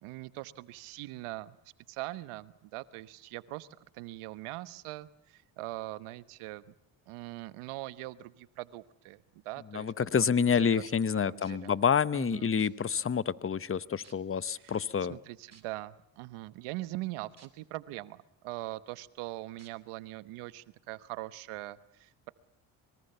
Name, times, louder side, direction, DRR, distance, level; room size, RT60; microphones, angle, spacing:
voice 1, 0.0-1.6 1.9-3.7 3.9-6.7 7.1-10.8 11.1-11.7 12.1-12.5 14.5-14.8 15.1-22.3, right 18 dB, 85° right, 16 dB, 1.3 m, -42 dB
voice 2, 9.7-15.2, left 7 dB, 25° left, 19 dB, 1.0 m, -28 dB
sound 1, 11.4-11.7 12.6-12.7 13.5-13.6 14.0-14.4 15.5-15.6 17.4-17.5 18.0-18.1 19.6-19.7 20.5-20.6, right 5 dB, 30° right, 4.1 m, -57 dB
25.0 x 23.0 x 6.9 m, 0.77 s
supercardioid pair, 70°, 49 cm